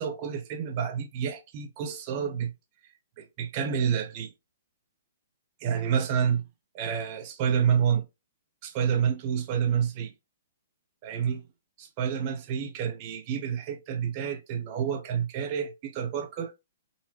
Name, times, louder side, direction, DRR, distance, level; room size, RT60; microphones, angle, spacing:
voice 1, 0.0-2.5 3.2-4.3 5.6-6.4 6.7-8.1 8.6-10.1 11.0-11.4 11.8-16.5, right 8 dB, 40° right, 0.8 m, -28 dB
4.0 x 2.2 x 2.9 m
hypercardioid pair, 125°, 0 cm